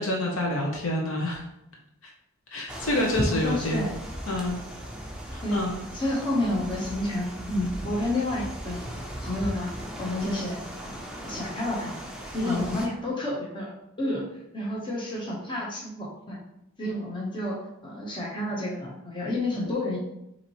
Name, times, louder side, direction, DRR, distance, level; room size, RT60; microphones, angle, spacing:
voice 1, 0.0-1.4 2.5-3.9 4.3-4.6 5.3-5.7 12.4-12.7 16.8-16.9, left 1 dB, 65° left, 0 dB, 0.9 m, -28 dB
sound 1, 2.7-12.9, equal, 5° right, 0.6 m, -37 dB
voice 2, 3.3-4.0 5.4-5.6 5.9-8.9 9.2-9.7 10.0-10.6 10.8-12.0 12.3-13.7 14.0-14.2 14.5-16.4 16.8-20.0, left 1 dB, 20° left, -4 dB, 1.1 m, -30 dB
5.9 x 2.8 x 3.1 m, 0.83 s
head